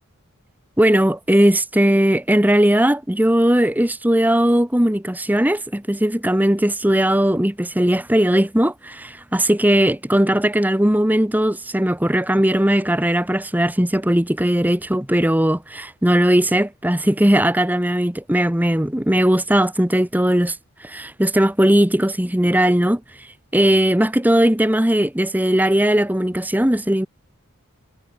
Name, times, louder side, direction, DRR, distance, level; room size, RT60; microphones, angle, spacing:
voice 1, 0.8-23.3 23.5-27.1, right 1 dB, 10° right, 1.1 m, -18 dB
head